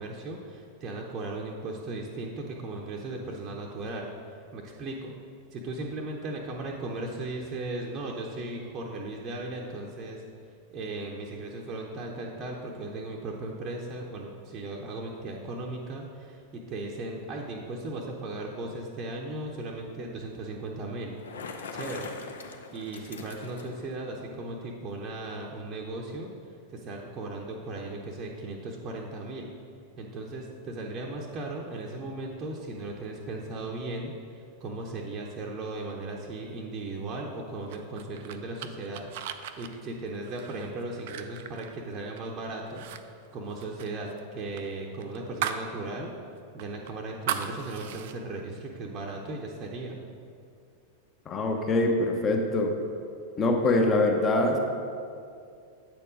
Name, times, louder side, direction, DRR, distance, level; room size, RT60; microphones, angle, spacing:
voice 1, 0.0-4.1 4.5-5.1 5.5-10.2 10.7-21.2 21.7-22.1 22.7-26.3 26.7-29.5 30.0-39.1 39.6-42.9 43.3-46.1 46.5-50.0, right 2 dB, 30° right, -1 dB, 0.7 m, -37 dB
Bicycle, 21.0-23.9, left 4 dB, 65° left, 0.6 m, -42 dB
sound 1, 37.7-42.3 42.7-43.0 43.3-45.7 46.1-46.2 46.6-48.1, right 9 dB, 50° right, 0.4 m, -37 dB
voice 2, 51.3-52.7 53.4-54.6, left 2 dB, 25° left, 2 dB, 0.9 m, -24 dB
8.4 x 4.4 x 5.0 m, 2.4 s
figure-of-eight pair, 90°, 0 cm